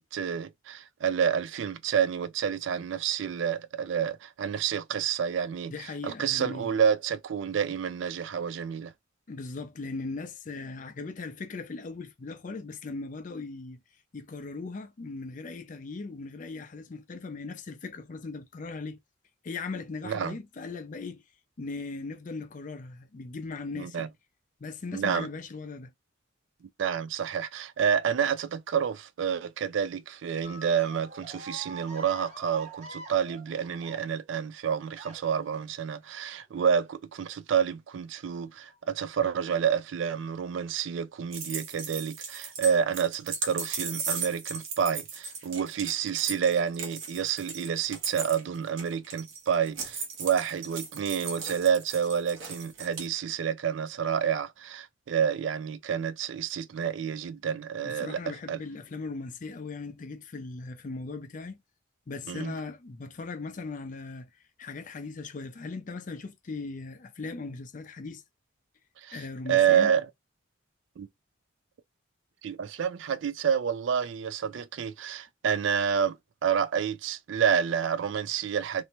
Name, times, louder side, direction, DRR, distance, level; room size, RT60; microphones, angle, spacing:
voice 1, 0.0-5.7 6.0-8.9 20.0-20.4 23.7-24.1 24.9-25.3 26.8-58.6 62.3-62.5 69.0-69.2 69.5-70.1 71.0-71.1 72.4-76.2 76.4-78.8, right 7 dB, 70° right, 0.3 m, -29 dB
voice 2, 5.7-6.7 9.3-13.8 14.1-19.0 19.4-21.2 21.6-24.1 24.6-25.9 57.8-61.6 62.1-64.3 64.6-68.2 69.1-69.9, left 3 dB, 40° left, 0.4 m, -38 dB
sound 1, 30.4-34.4 34.9-35.5 36.5-36.9 37.3-37.4 38.7-38.8 39.6-39.8, right 3 dB, 35° right, 0.8 m, -45 dB
sound 2, 41.3-53.1, right 5 dB, 90° right, 0.8 m, -37 dB
2.7 x 2.1 x 2.9 m
head